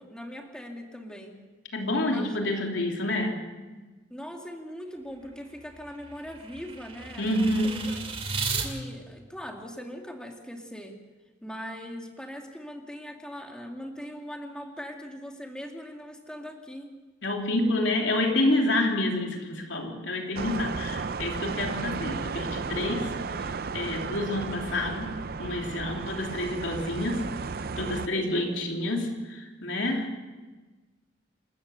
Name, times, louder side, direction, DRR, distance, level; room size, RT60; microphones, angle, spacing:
voice 1, 0.0-1.4 2.0-2.4 4.1-8.0 8.6-11.0 11.4-16.9, equal, 5° left, 2 dB, 2.4 m, -40 dB
voice 2, 1.7-3.4 7.2-7.9 17.2-27.2 27.8-30.2, left 1 dB, 80° left, 1 dB, 3.2 m, -28 dB
sound 1, 5.0-8.7, right 4 dB, 30° right, 2.7 m, -35 dB
sound 2, 20.3-28.1, right 4 dB, 55° right, 0.6 m, -34 dB
28.5 x 13.5 x 6.9 m, 1.3 s
head